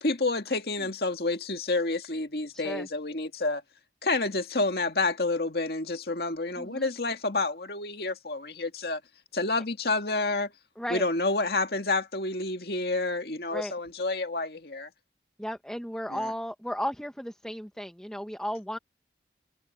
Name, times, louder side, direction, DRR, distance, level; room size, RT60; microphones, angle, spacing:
voice 1, 0.0-3.6 4.0-9.0 9.3-10.5 10.9-14.9 16.1-16.3, left 3 dB, 60° left, 2.0 m, -29 dB
voice 2, 2.5-2.9 6.6-6.9 10.8-11.0 13.5-13.7 15.4-18.8, equal, 5° left, 1.1 m, -34 dB
head